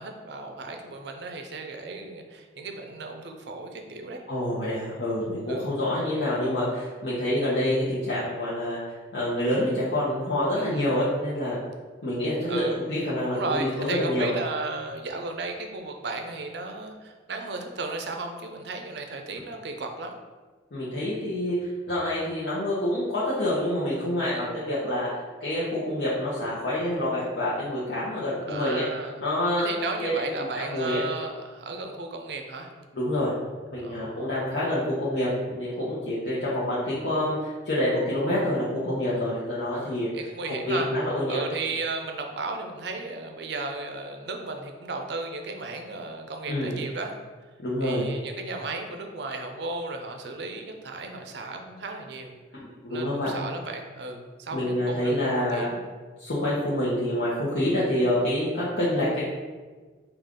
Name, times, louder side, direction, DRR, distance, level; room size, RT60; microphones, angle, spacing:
voice 1, 0.0-4.2 5.5-5.7 10.7-10.9 12.5-12.8 13.3-20.2 24.3-24.5 28.5-29.2 29.6-32.7 33.8-34.4 39.1-39.3 40.1-40.9 41.3-47.1 47.8-52.4 52.9-55.8, right 3 dB, 60° right, 4 dB, 0.5 m, -35 dB
voice 2, 4.3-8.8 9.1-11.6 12.0-14.3 20.7-25.1 25.4-28.8 29.2-29.7 30.0-30.1 30.5-31.0 32.9-33.3 33.7-40.1 40.7-41.4 46.5-46.7 47.6-48.1 52.8-53.3 54.5-55.7 56.2-59.4, left 1 dB, 60° left, -9 dB, 0.8 m, -27 dB
5.0 x 2.4 x 3.6 m, 1.4 s
head